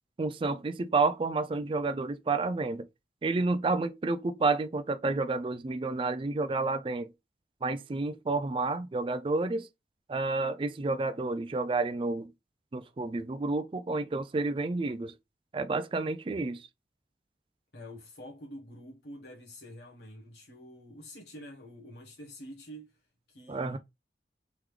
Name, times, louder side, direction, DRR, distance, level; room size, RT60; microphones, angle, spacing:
voice 1, 0.2-2.9 3.2-7.1 7.6-9.7 10.1-12.3 12.7-15.1 15.5-16.7 23.5-23.8, right 3 dB, 30° right, 0.3 m, -30 dB
voice 2, 17.7-23.0 23.3-23.8, equal, 65° left, 1.1 m, -47 dB
3.6 x 3.1 x 3.2 m
head